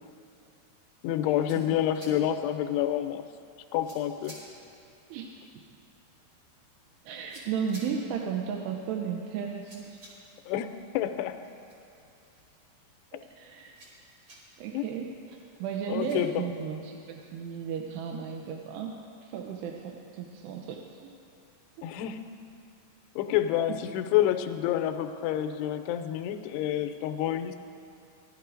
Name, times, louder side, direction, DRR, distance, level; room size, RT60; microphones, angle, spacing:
voice 1, 1.0-3.3 3.7-4.4 10.5-11.4 14.7-14.9 15.9-16.3 21.8-22.2 23.2-27.6, left 11 dB, 85° left, 8 dB, 2.6 m, -28 dB
sound 1, 1.1-16.2, right 1 dB, 40° right, 3.6 m, -56 dB
voice 2, 7.1-10.0 13.1-13.7 14.6-18.9 19.2-21.2 21.8-21.9 23.7-23.8, right 7 dB, 85° right, 1 dB, 2.8 m, -35 dB
17.5 x 12.0 x 2.5 m, 2.5 s
omnidirectional pair, 4.7 m